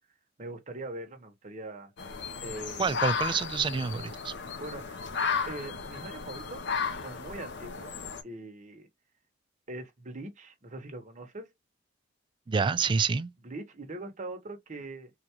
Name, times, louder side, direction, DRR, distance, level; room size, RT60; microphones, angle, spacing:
voice 1, 0.4-1.9 2.4-3.0 4.6-5.0 5.5-6.6 7.0-7.9 8.2-8.9 9.7-11.5 13.4-15.1, right 2 dB, 40° right, 0.9 m, -41 dB
sound 1, 2.0-8.2, left 5 dB, 60° left, 0.6 m, -34 dB
voice 2, 2.8-4.3 12.5-13.3, right 5 dB, 25° right, 0.3 m, -28 dB
3.8 x 2.3 x 2.9 m
head